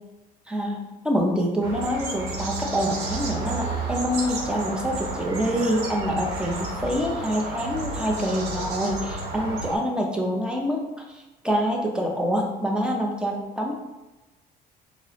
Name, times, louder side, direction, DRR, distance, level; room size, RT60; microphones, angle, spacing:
voice 1, 0.5-10.8 11.1-13.8, equal, 5° right, 0 dB, 0.6 m, -26 dB
sound 1, 1.6-9.8, right 3 dB, 80° right, 0.8 m, -32 dB
4.5 x 2.0 x 2.9 m, 1.1 s
cardioid pair, 110°, 17 cm